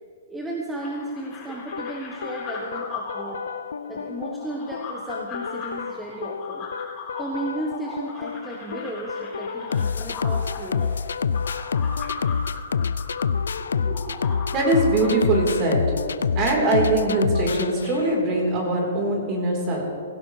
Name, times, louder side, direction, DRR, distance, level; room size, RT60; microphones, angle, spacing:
voice 1, 0.3-3.4 3.9-6.7 7.2-10.9, right 2 dB, 5° right, -2 dB, 1.3 m, -34 dB
sound 1, 0.8-15.1, left 4 dB, 25° left, 4.1 m, -38 dB
sound 2, 1.7-18.4, left 6 dB, 90° left, 0.4 m, -28 dB
voice 2, 13.7-14.1 14.5-15.8 16.4-19.8, right 2 dB, 30° right, -1 dB, 3.9 m, -22 dB
17.5 x 16.0 x 3.3 m, 2.2 s
hypercardioid pair, 150°, 0 cm